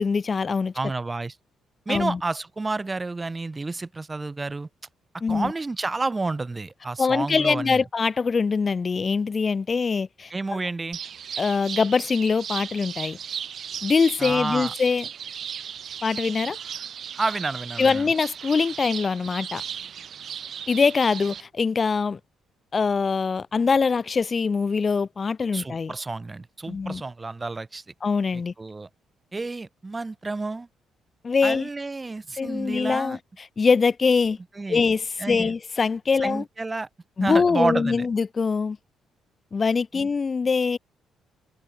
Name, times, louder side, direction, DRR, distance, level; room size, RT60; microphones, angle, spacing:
voice 1, 0.0-0.7 1.9-2.2 5.2-5.5 7.0-10.6 11.4-13.2 13.8-15.0 16.0-16.6 17.8-19.6 20.7-22.2 22.7-25.9 26.7-27.0 28.0-28.5 31.2-31.7 32.4-34.4 34.7-36.4 37.2-38.8 39.5-40.8, left 5 dB, 35° left, 0.5 m, -23 dB
voice 2, 0.7-1.3 1.9-4.7 5.3-7.8 10.3-11.0 14.2-14.7 17.2-18.1 25.5-27.8 28.3-28.9 29.3-30.7 31.4-33.2 34.6-34.8 35.2-35.5 36.2-36.9 37.2-38.1 39.9-40.1, right 3 dB, 20° right, 1.1 m, -30 dB
sound 1, 10.9-21.4, right 8 dB, 55° right, 2.3 m, -36 dB
open air
cardioid pair, 90°, 0 cm